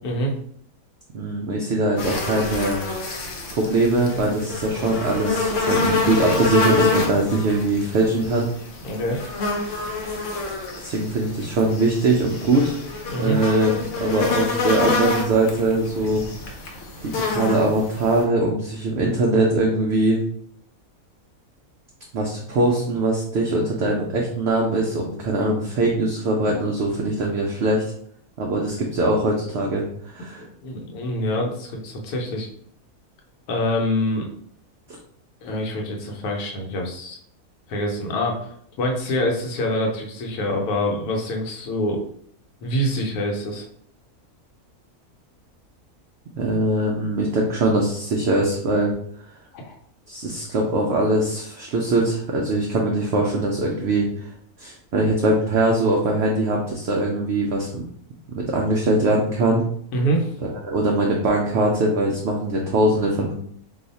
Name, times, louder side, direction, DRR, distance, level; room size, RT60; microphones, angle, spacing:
voice 1, 0.0-0.3 8.8-9.2 13.1-13.4 30.4-32.5 33.5-34.3 35.4-37.2 37.7-38.5 38.8-42.0 42.6-43.6 49.5-49.7 59.9-60.3, equal, 85° left, 0 dB, 1.2 m, -25 dB
voice 2, 1.1-2.8 3.5-8.5 10.8-12.8 13.2-16.2 17.0-20.2 22.1-27.8 28.4-30.4 46.4-48.9 50.1-54.3 54.6-57.8 58.3-59.6 60.6-63.3, right 2 dB, 65° right, 0 dB, 0.7 m, -22 dB
sound 1, 2.0-18.2, left 3 dB, 65° left, 1.0 m, -27 dB
2.7 x 2.4 x 4.0 m, 0.64 s
omnidirectional pair, 1.5 m